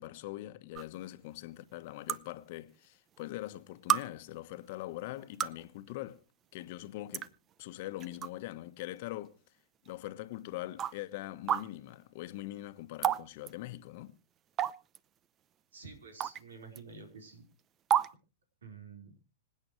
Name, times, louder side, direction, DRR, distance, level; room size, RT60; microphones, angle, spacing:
voice 1, 0.0-6.2 6.5-7.3 7.6-9.4 9.9-14.1, left 16 dB, 55° left, 1.2 m, -42 dB
sound 1, 0.8-0.9 2.1-2.2 3.2-3.3 3.9-4.0 5.2-5.6 6.6-6.7 7.1-7.3 8.0-8.3 8.8-8.9 9.9-10.0 10.8-10.9 11.5-11.6 13.0-13.2 13.5-13.6 14.6-15.0 16.2-16.4 16.8-16.9 17.9-18.1, right 10 dB, 30° right, 0.6 m, -29 dB
voice 2, 15.7-17.4 18.6-19.2, right 4 dB, 85° right, 4.4 m, -49 dB
26.0 x 8.8 x 3.2 m
hypercardioid pair, 115°, 0 cm